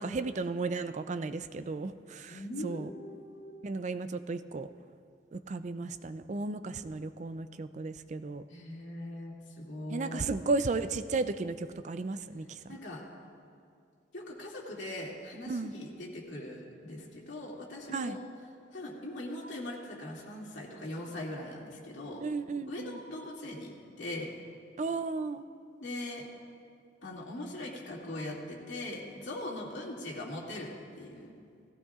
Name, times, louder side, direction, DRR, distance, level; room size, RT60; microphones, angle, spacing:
voice 1, 0.0-2.9 3.6-4.7 5.3-8.4 9.9-12.5 15.5-15.7 17.9-18.2 22.2-23.0 24.8-25.4, right 3 dB, 40° right, 11 dB, 0.4 m, -34 dB
voice 2, 2.3-3.6 8.5-10.3 12.7-13.0 14.1-18.2 18.7-22.2 22.7-24.3 25.8-26.2 27.0-30.7 31.0-31.3, left 1 dB, 85° left, -3 dB, 2.4 m, -41 dB
17.5 x 16.0 x 2.4 m, 2.4 s
head